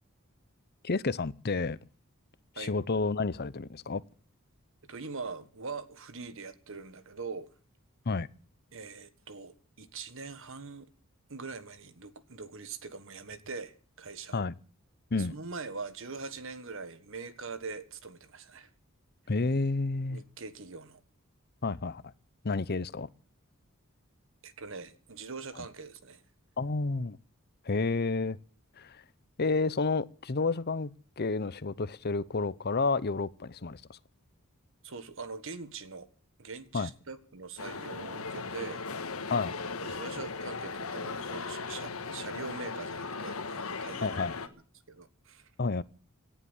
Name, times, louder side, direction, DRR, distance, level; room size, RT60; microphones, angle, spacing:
voice 1, 0.8-1.8 2.6-4.0 8.1-8.3 14.3-14.5 15.1-15.3 19.3-20.2 21.6-22.1 22.4-23.1 26.6-27.2 27.6-28.4 28.8-29.0 29.4-30.9 31.2-34.0 36.7-36.9 39.3-39.5 44.0-44.4 45.6-45.8, left 3 dB, 50° left, 0.7 m, -30 dB
voice 2, 4.8-7.5 8.7-10.9 11.3-14.5 15.1-18.7 20.1-21.0 24.4-26.2 34.8-36.1 36.4-38.8 39.8-44.2 44.9-45.5, right 4 dB, 65° right, 1.5 m, -42 dB
sound 1, 37.6-44.5, left 4 dB, 75° left, 1.6 m, -37 dB
18.0 x 11.0 x 7.2 m
head